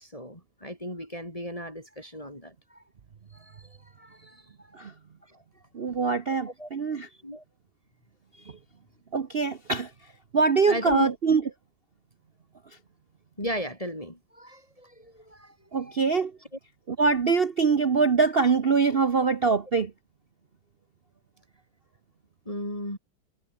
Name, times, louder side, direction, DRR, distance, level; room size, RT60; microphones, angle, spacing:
voice 1, 0.0-2.8 3.3-3.7 4.0-4.4 6.3-6.7 7.2-7.4 10.7-11.1 13.4-15.5 15.8-16.0 22.5-23.0, equal, 15° left, 7.0 m, -36 dB
voice 2, 5.7-7.1 9.1-9.9 10.3-11.4 15.7-16.3 16.9-19.9, right 5 dB, 45° right, 0.7 m, -23 dB
omnidirectional pair, 2.2 m